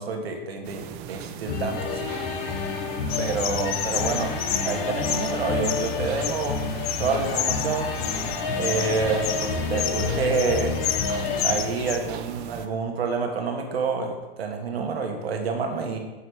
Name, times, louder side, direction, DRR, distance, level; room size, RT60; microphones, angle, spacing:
voice 1, 0.0-2.1 3.2-4.3 4.6-6.6 7.0-7.9 8.5-10.8 11.4-16.0, right 4 dB, 80° right, 4 dB, 1.2 m, -28 dB
sound 1, 0.6-12.7, right 10 dB, 35° right, 0.4 m, -40 dB
sound 2, 1.4-11.6, left 4 dB, 60° left, 1.0 m, -29 dB
sound 3, 3.1-12.0, left 9 dB, 80° left, 0.6 m, -31 dB
6.5 x 6.0 x 3.1 m, 1.1 s
hypercardioid pair, 110°, 30 cm